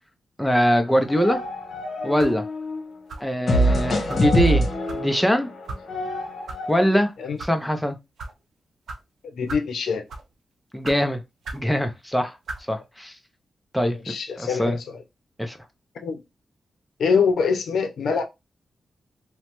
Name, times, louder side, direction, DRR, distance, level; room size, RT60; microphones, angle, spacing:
voice 1, 0.4-1.4 2.0-2.4 3.2-4.7 4.9-5.5 6.7-7.1 7.4-8.0 10.7-11.2 11.5-12.3 12.7-13.1 13.7-14.8 15.4-15.6, equal, 5° left, 0.5 m, -22 dB
sound 1, 0.8-2.9 3.5-6.9, equal, 55° left, 0.9 m, -25 dB
sound 2, 2.2-2.4 3.1-3.4 4.1-4.3 4.9-5.0 5.7-5.8 6.5-6.6 7.2-7.5 8.2-8.3 8.9-9.0 9.5-9.7 10.1-10.3 10.8-11.0 11.4-11.7 12.4-12.6, right 3 dB, 80° right, 0.6 m, -36 dB
voice 2, 9.2-10.0 13.9-15.0 16.0-16.2 17.0-18.2, left 5 dB, 85° left, 0.6 m, -24 dB
3.0 x 2.1 x 2.9 m
wide cardioid pair, 120°, 0 cm